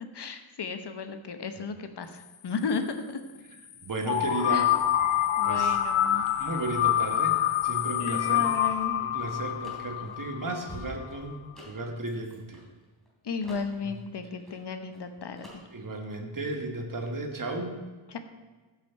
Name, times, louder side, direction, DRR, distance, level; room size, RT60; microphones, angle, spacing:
voice 1, 0.0-3.2 4.4-4.7 5.4-6.3 8.0-9.0 13.2-15.5 18.1-18.2, left 5 dB, 55° left, 8 dB, 1.0 m, -34 dB
voice 2, 3.8-4.7 5.4-5.8 6.3-8.5 9.0-12.6 13.8-14.0 15.7-17.8, right 2 dB, 40° right, 4 dB, 1.5 m, -34 dB
sound 1, 4.0-10.8, left 11 dB, 80° left, 0.8 m, -26 dB
sound 2, 7.1-12.4, equal, 25° left, 3.0 m, -51 dB
sound 3, 8.7-13.1 13.4-15.1 15.4-16.1, equal, ahead, 3.0 m, -53 dB
14.5 x 6.2 x 4.6 m, 1.3 s
wide cardioid pair, 140°, 48 cm